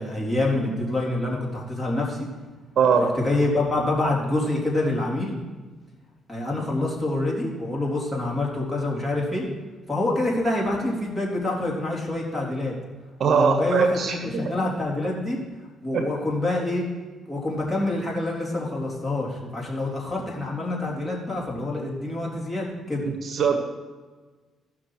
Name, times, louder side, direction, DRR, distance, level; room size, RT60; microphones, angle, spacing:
voice 1, 0.0-2.3 2.9-5.4 6.3-9.5 9.9-12.7 13.2-15.4 15.8-16.8 17.3-23.1, left 2 dB, 15° left, -4 dB, 3.5 m, -26 dB
voice 2, 2.8-3.1 13.2-14.2 15.9-16.1 23.2-23.6, right 6 dB, 55° right, 6 dB, 1.1 m, -20 dB
15.5 x 6.2 x 4.7 m, 1.3 s
cardioid pair, 90°, 0 cm